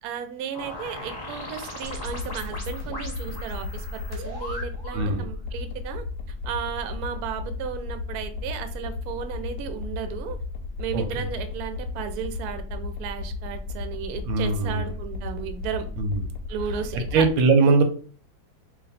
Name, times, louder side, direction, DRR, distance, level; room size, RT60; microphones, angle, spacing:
voice 1, 0.0-6.0 6.4-10.4 10.8-15.8 16.5-17.3, right 8 dB, 75° right, 8 dB, 0.9 m, -34 dB
sound 1, 0.5-5.1, left 1 dB, 20° left, 0.6 m, -38 dB
sound 2, 1.8-17.3, left 3 dB, 70° left, 1.1 m, -34 dB
voice 2, 4.9-5.3 10.9-11.0 14.3-14.9 16.0-16.2 17.1-17.8, right 4 dB, 90° right, 7 dB, 1.4 m, -20 dB
3.1 x 2.5 x 4.0 m, 0.41 s
omnidirectional pair, 2.1 m